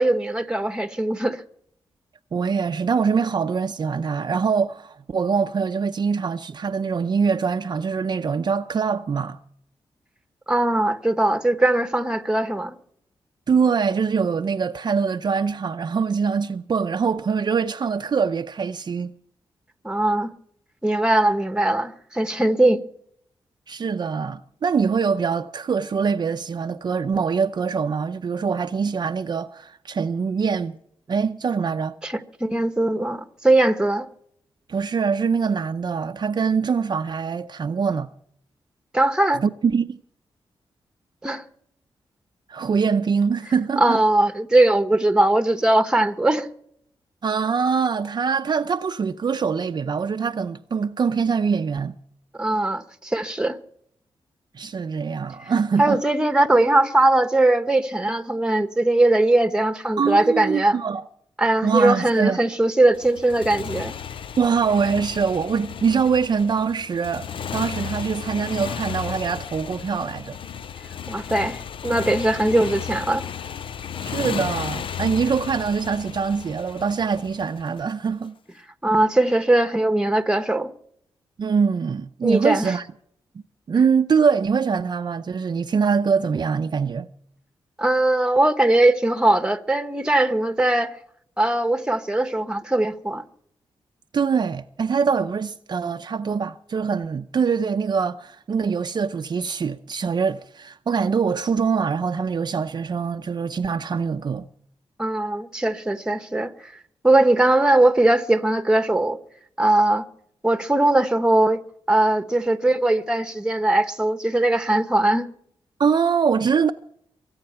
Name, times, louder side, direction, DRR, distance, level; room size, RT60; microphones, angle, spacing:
voice 1, 0.0-1.4 10.5-12.8 19.8-20.3 20.8-22.8 32.0-34.1 38.9-39.4 41.2-41.4 43.8-46.5 52.4-53.6 55.8-60.8 61.4-63.9 71.1-73.2 78.8-80.7 82.2-82.7 87.8-90.9 91.4-93.2 105.0-106.7 107.0-109.2 109.6-110.0 110.4-111.6 111.9-115.3, right 2 dB, 10° right, 1.3 m, -20 dB
voice 2, 2.3-9.4 13.5-19.1 23.7-30.8 31.1-31.9 34.7-38.1 39.4-40.0 42.5-44.0 47.2-52.0 54.5-56.0 60.0-61.0 61.6-62.4 64.4-67.3 67.5-70.4 74.0-78.3 81.4-82.9 83.7-87.1 94.1-104.5 115.8-116.7, right 6 dB, 50° right, 0.6 m, -23 dB
Motorcycle, 62.9-78.1, left 8 dB, 65° left, 0.6 m, -34 dB
23.5 x 8.8 x 5.7 m
cardioid pair, 85°, 10 cm